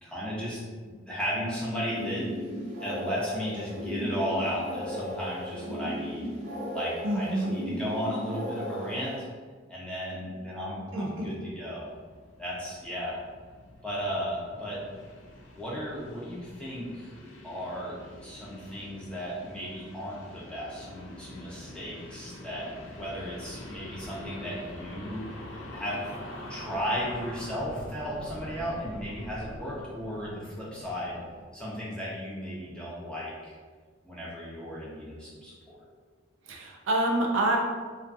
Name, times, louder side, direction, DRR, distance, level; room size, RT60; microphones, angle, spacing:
voice 1, 0.0-0.6 0.8-2.3 2.8-6.3 6.7-9.3 9.7-11.9 12.4-13.2 13.8-14.8 15.5-17.1 17.4-25.3 25.7-26.1 26.5-31.2 31.5-33.6 34.0-35.5, equal, 5° left, -7 dB, 0.6 m, -35 dB
sound 1, 1.8-9.2, equal, 40° right, 0.7 m, -35 dB
voice 2, 7.0-7.5 10.9-11.3 36.5-37.6, right 1 dB, 80° right, 0 dB, 0.4 m, -27 dB
sound 2, 11.9-31.4, left 1 dB, 80° left, 0.4 m, -45 dB
2.5 x 2.3 x 2.5 m, 1.5 s
head